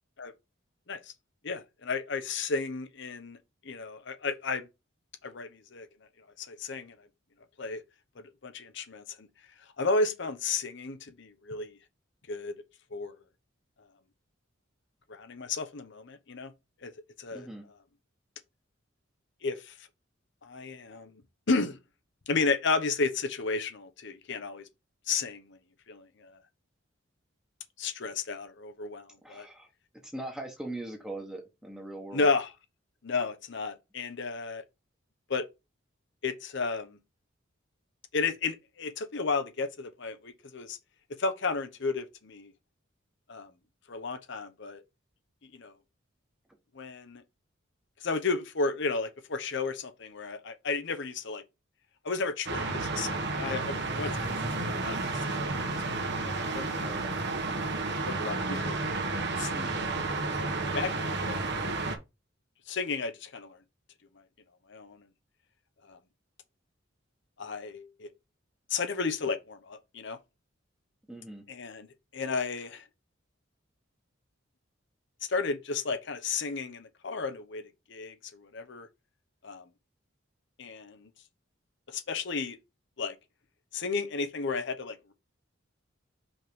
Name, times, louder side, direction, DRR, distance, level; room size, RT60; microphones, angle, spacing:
voice 1, 1.4-3.4 3.6-4.7 5.2-5.9 6.4-6.9 7.6-7.8 8.2-9.3 9.8-11.7 12.3-12.5 12.9-13.1 15.1-16.5 16.8-16.9 17.2-17.5 19.4-19.7 20.4-21.2 21.5-21.8 22.3-24.6 25.1-25.6 25.9-26.3 27.8-29.5 32.1-32.5 33.0-34.6 35.3-35.4 36.2-37.0 38.1-40.8 41.2-42.5 43.3-43.5 43.9-44.8 45.5-45.7 46.7-47.2 48.0-51.4 52.0-54.4 54.6-55.0 55.3-55.4 55.8-56.0 56.2-56.7 58.0-58.7 59.4-59.5 59.8-59.9 60.7-61.8 62.7-63.6 64.7-65.0 65.9-66.0 67.4-68.1 68.7-70.2 71.5-71.9 72.1-72.8 75.3-78.9 79.4-79.6 80.6-81.1 81.9-82.6 83.0-83.1 83.7-85.1, left 4 dB, 65° left, 0.9 m, -33 dB
voice 2, 17.3-17.6 29.2-29.7 30.0-32.3 56.8-57.1 59.5-59.8 71.1-71.4, right 1 dB, 5° right, 1.2 m, -41 dB
sound 1, 52.5-62.0, right 3 dB, 60° right, 1.3 m, -31 dB
5.4 x 3.7 x 4.8 m
head